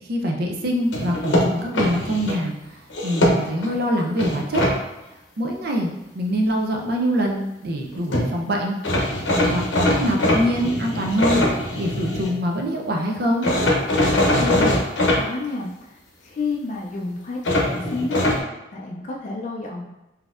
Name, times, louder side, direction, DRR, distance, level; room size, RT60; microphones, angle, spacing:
voice 1, 0.1-2.8 3.0-4.6 5.4-9.2 9.5-13.5, equal, 55° right, 1 dB, 0.5 m, -24 dB
sound 1, 0.9-2.4 2.9-3.7 4.2-4.7 7.8-8.3 8.8-12.3 13.4-15.2 17.4-18.4, left 1 dB, 75° left, 0.7 m, -21 dB
voice 2, 14.4-14.8 15.1-18.2 18.7-19.9, left 3 dB, 40° left, -2 dB, 0.4 m, -30 dB
4.0 x 2.7 x 2.4 m, 0.97 s
head